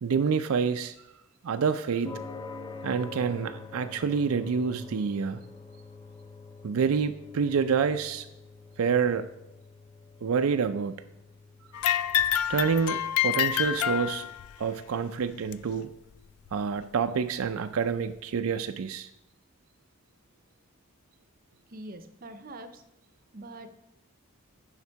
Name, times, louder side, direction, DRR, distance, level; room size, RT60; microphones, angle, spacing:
voice 1, 0.0-0.9 1.4-2.2 2.8-5.4 6.6-8.3 8.8-9.3 10.2-11.0 12.5-14.3 14.6-15.9 16.5-19.1, right 6 dB, 80° right, 9 dB, 0.4 m, -27 dB
sound 1, 2.0-18.6, left 3 dB, 20° left, 0.5 m, -47 dB
sound 2, 11.7-14.6 15.5-15.6 16.5-16.6 17.4-17.5, left 11 dB, 90° left, 0.3 m, -27 dB
voice 2, 21.7-22.8 23.3-23.7, right 1 dB, 40° right, 10 dB, 0.6 m, -43 dB
9.7 x 5.9 x 4.6 m, 0.85 s
head